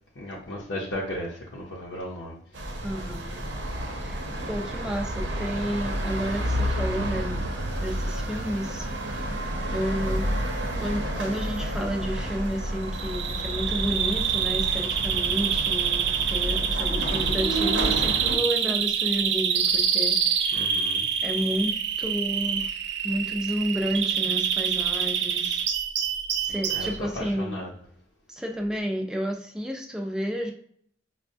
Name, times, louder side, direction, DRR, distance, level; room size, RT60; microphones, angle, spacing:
voice 1, 0.2-2.4 20.5-21.0 26.7-26.9 27.1-27.7, left 1 dB, 75° left, -5 dB, 0.7 m, -35 dB
sound 1, 2.5-18.4, right 1 dB, 85° right, 0.8 m, -30 dB
voice 2, 2.8-3.4 4.0-7.5 7.8-9.3 9.7-10.3 10.8-20.2 20.5-20.6 21.2-22.7 23.0-25.6 26.4-27.6 28.3-30.5, equal, 5° right, 1 dB, 0.4 m, -31 dB
Bird vocalization bird call bird song, 12.9-26.9, right 8 dB, 65° right, 0.4 m, -26 dB
5.2 x 2.2 x 2.6 m, 0.64 s
head